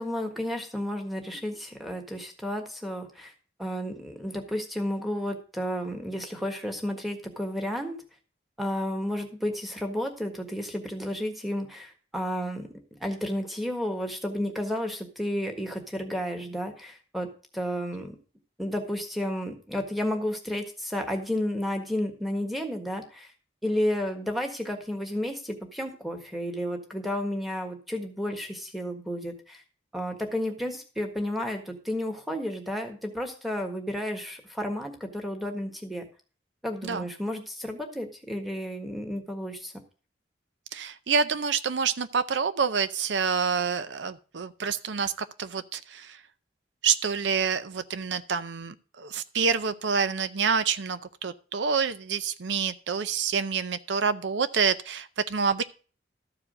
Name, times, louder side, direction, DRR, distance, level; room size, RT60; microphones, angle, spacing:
voice 1, 0.0-3.3 3.6-8.0 8.6-12.7 13.0-17.3 17.5-18.2 18.6-23.3 23.6-29.6 29.9-36.1 36.6-39.7, equal, ahead, 4 dB, 1.5 m, -32 dB
voice 2, 40.7-45.1 45.4-46.2 46.8-55.6, right 6 dB, 80° right, 12 dB, 0.6 m, -27 dB
13.0 x 4.9 x 6.3 m, 0.38 s
head